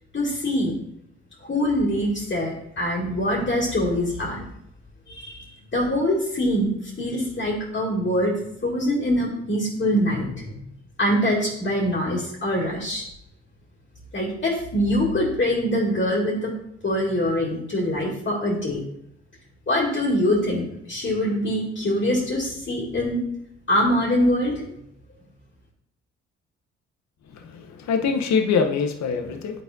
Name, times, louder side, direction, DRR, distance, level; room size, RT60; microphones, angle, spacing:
voice 1, 0.1-0.7 1.4-4.4 5.1-5.5 5.7-8.3 8.6-10.6 11.0-13.0 14.1-16.6 16.8-18.8 19.7-23.2 23.7-24.6, equal, 35° left, -6 dB, 2.4 m, -24 dB
voice 2, 27.3-29.6, left 5 dB, 60° left, 5 dB, 0.9 m, -24 dB
9.3 x 4.1 x 2.6 m, 0.75 s
hypercardioid pair, 50°, 32 cm